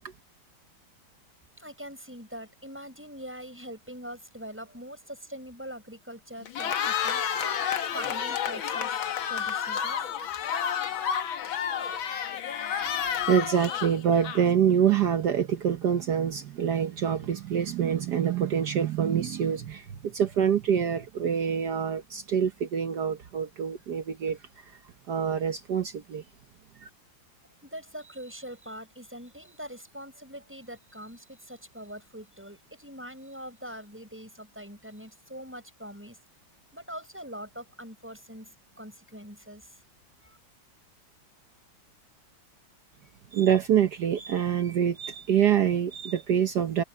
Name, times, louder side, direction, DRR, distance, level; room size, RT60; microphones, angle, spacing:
voice 1, 1.6-8.9 9.3-10.0 27.6-36.2 36.7-39.8 40.2-40.4, equal, 5° right, 6.7 m, -43 dB
Cheering, 6.4-14.7, left 8 dB, 75° left, 2.0 m, -30 dB
voice 2, 13.3-24.4 25.1-26.2 43.3-46.8, right 8 dB, 60° right, 1.4 m, -26 dB
omnidirectional pair, 2.2 m